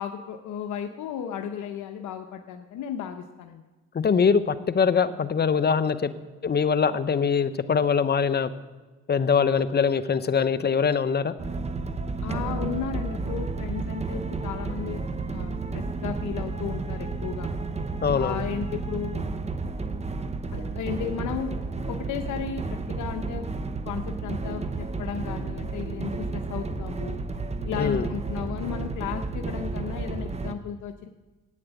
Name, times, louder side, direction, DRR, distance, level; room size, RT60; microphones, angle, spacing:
voice 1, 0.0-3.6 12.2-15.0 15.3-17.5 18.1-19.3 20.5-21.5 21.9-23.5 23.8-27.2 27.6-31.1, left 8 dB, 75° left, 5 dB, 0.8 m, -34 dB
voice 2, 3.9-6.1 6.4-8.5 9.1-11.3 18.0-18.4 27.8-28.1, left 6 dB, 35° left, 11 dB, 0.8 m, -23 dB
sound 1, 11.4-30.5, right 3 dB, 20° right, 0.8 m, -32 dB
11.0 x 8.9 x 8.1 m, 1.2 s
cardioid pair, 90°, 30 cm